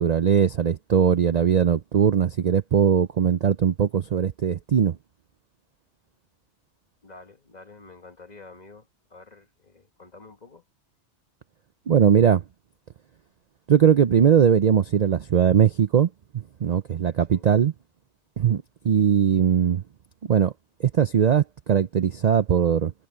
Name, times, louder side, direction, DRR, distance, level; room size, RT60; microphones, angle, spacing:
voice 1, 0.0-5.0 11.9-12.4 13.7-17.7 18.4-19.8 20.2-20.5 20.8-22.9, right 8 dB, 50° right, 0.5 m, -20 dB
voice 2, 7.0-10.6 17.3-17.4, left 3 dB, 40° left, 1.8 m, -48 dB
omnidirectional pair, 1.2 m